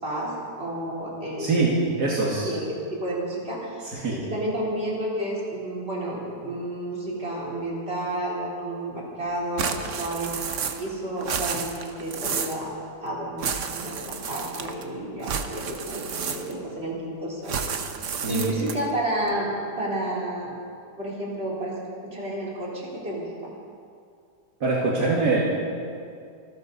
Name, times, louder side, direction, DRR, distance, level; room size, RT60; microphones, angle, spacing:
voice 1, 0.0-1.6 2.4-12.7 13.0-17.7 18.3-20.5 21.0-23.3, right 1 dB, 35° right, -6 dB, 4.0 m, -31 dB
voice 2, 1.4-2.5 3.9-4.2 18.1-18.7 24.6-25.4, right 3 dB, 70° right, -4 dB, 2.5 m, -24 dB
sound 1, 9.6-10.9 11.2-12.6 13.4-14.8 15.2-16.7 17.5-18.9, right 6 dB, 50° right, 1.1 m, -31 dB
26.5 x 12.5 x 4.1 m, 2.3 s
omnidirectional pair, 1.8 m